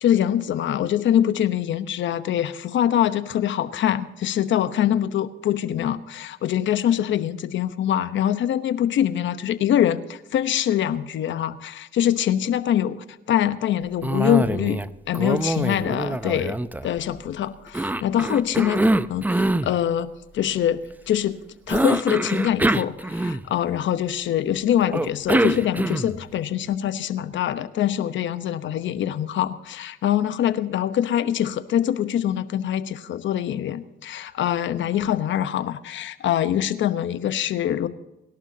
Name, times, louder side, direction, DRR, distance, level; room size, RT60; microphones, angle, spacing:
voice 1, 0.0-13.0 13.3-14.8 15.1-16.6 16.8-20.1 20.3-21.4 21.7-37.9, left 10 dB, 65° left, 12 dB, 1.0 m, -24 dB
Cough, 14.0-14.9 15.1-17.2 17.7-19.7 21.7-23.7 24.9-26.2, right 1 dB, 10° right, 0.6 m, -24 dB
24.5 x 11.5 x 2.8 m, 1.0 s
supercardioid pair, 80°, 21 cm